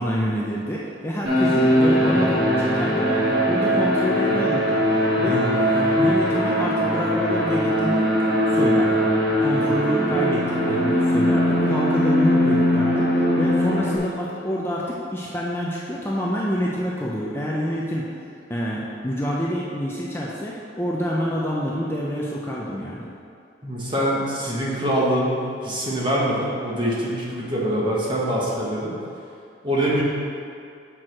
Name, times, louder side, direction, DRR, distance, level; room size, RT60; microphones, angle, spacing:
voice 1, 0.0-3.2 3.5-4.8 5.2-8.1 8.5-9.1 9.4-18.1 18.5-23.1, equal, 15° left, -5 dB, 0.5 m, -27 dB
sound 1, 1.2-14.0, equal, 55° right, 1.8 m, -20 dB
voice 2, 5.2-5.5 9.5-9.8 23.6-28.9 29.6-30.0, equal, 25° right, -5 dB, 1.3 m, -24 dB
6.1 x 4.6 x 6.2 m, 2.5 s
head